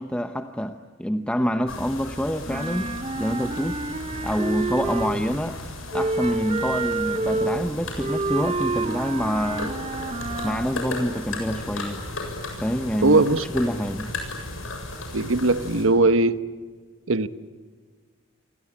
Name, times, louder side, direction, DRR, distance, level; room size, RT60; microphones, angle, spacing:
voice 1, 0.0-3.8 4.2-5.6 5.9-9.7 10.4-12.0 12.6-13.2 13.5-14.1, equal, 5° left, 0.8 m, -26 dB
sound 1, 1.7-15.9, left 2 dB, 85° left, 7.5 m, -35 dB
Wind instrument woodwind instrument, 2.5-5.4 5.9-10.8, right 3 dB, 30° right, 1.1 m, -28 dB
voice 2, 13.0-13.4 15.1-16.4 17.1-17.3, right 2 dB, 75° right, 1.1 m, -19 dB
28.5 x 24.0 x 8.7 m
head